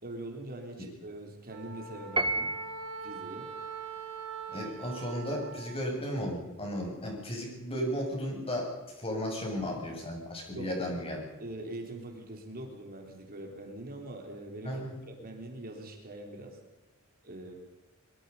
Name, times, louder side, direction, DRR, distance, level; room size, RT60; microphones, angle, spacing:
voice 1, 0.0-2.5 3.0-3.5 10.5-11.0 11.4-16.6 17.2-17.5, right 1 dB, 45° right, 3 dB, 3.4 m, -43 dB
Wind instrument woodwind instrument, 1.5-5.9, right 5 dB, 85° right, 5.0 m, -43 dB
Piano, 2.2-3.1, right 2 dB, 20° right, 1.4 m, -31 dB
voice 2, 4.5-11.2 14.6-14.9, equal, 25° left, 0 dB, 7.2 m, -34 dB
23.5 x 22.5 x 5.5 m, 1.1 s
head